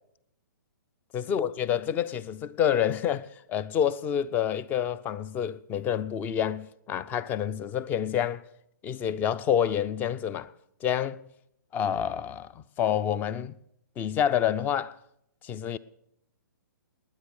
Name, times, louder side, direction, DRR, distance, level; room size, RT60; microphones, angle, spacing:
voice 1, 1.1-8.4 8.8-10.5 10.8-11.2 11.7-13.6 14.0-15.0 15.4-15.8, left 9 dB, 15° left, 0.5 m, -28 dB
20.0 x 9.8 x 6.4 m
figure-of-eight pair, 125°, 11 cm